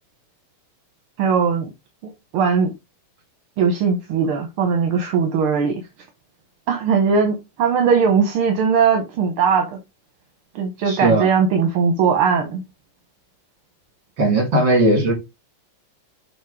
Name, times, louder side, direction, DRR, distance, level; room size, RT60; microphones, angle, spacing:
voice 1, 1.2-1.7 2.3-2.7 3.6-5.7 6.7-9.7 10.6-12.6, right 6 dB, 80° right, 2.0 m, -19 dB
voice 2, 10.9-11.3 14.2-15.1, right 1 dB, 65° right, 3.0 m, -17 dB
7.2 x 2.8 x 4.8 m
omnidirectional pair, 2.4 m